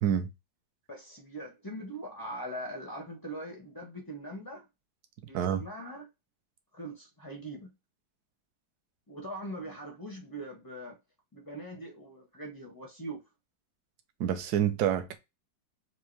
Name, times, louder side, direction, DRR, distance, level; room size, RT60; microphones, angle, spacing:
voice 1, 0.9-4.6 5.3-6.1 6.7-7.7 9.1-11.0 11.3-13.2, right 1 dB, 35° left, 0.3 m, -41 dB
voice 2, 14.2-15.2, right 9 dB, 65° right, 1.1 m, -27 dB
4.5 x 2.6 x 3.2 m
omnidirectional pair, 2.1 m